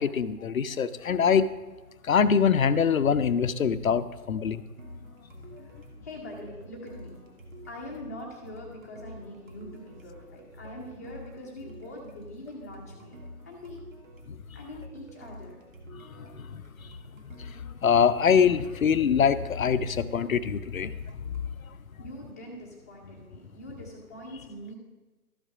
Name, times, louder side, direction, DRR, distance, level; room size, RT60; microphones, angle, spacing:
voice 1, 0.0-1.5 2.0-4.6 15.9-16.6 17.5-20.9, left 7 dB, 60° left, 13 dB, 0.6 m, -24 dB
sound 1, 4.8-21.5, equal, 55° right, 1.8 m, -48 dB
voice 2, 6.0-7.2 7.7-13.2 13.4-13.8 14.5-15.6 22.0-24.7, left 1 dB, 10° left, -3 dB, 0.7 m, -43 dB
12.5 x 5.7 x 4.8 m, 1.2 s
figure-of-eight pair, 150°, 46 cm